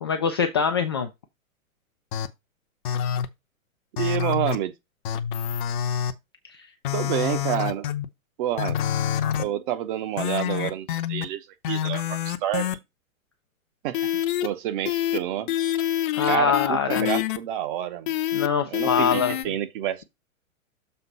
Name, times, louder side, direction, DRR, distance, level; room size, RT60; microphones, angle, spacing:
voice 1, 0.0-1.1 6.5-6.7 16.1-17.1 18.3-19.4, left 6 dB, 20° left, 0.3 m, -24 dB
sound 1, 2.1-2.3 2.9-3.3 4.0-4.6 5.1-6.1 6.8-8.1 8.6-9.4 10.2-11.3 11.6-12.8 13.9-14.5 14.9-15.2 15.5-17.4 18.1-18.5 18.7-19.5, left 10 dB, 35° left, 0.8 m, -26 dB
voice 2, 4.0-4.7 6.9-7.9 8.4-8.8 9.4-12.7 13.8-15.6 16.3-18.2 18.7-20.0, right 12 dB, 35° right, 1.1 m, -29 dB
6.8 x 3.8 x 5.4 m
figure-of-eight pair, 110°, 42 cm